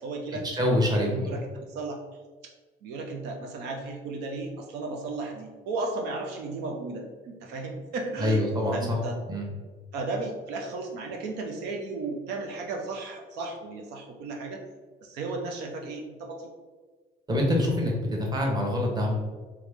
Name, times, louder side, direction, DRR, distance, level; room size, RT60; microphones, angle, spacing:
voice 1, 0.0-2.0 2.4-2.5 2.8-8.4 8.7-9.2 9.9-14.6 15.0-16.5 18.2-18.3, right 3 dB, 90° right, 2 dB, 0.6 m, -35 dB
voice 2, 0.5-1.4 8.2-9.0 9.3-9.4 17.3-19.1, left 1 dB, 25° right, -1 dB, 1.0 m, -25 dB
3.2 x 3.0 x 3.5 m, 1.3 s
cardioid pair, 110°, 17 cm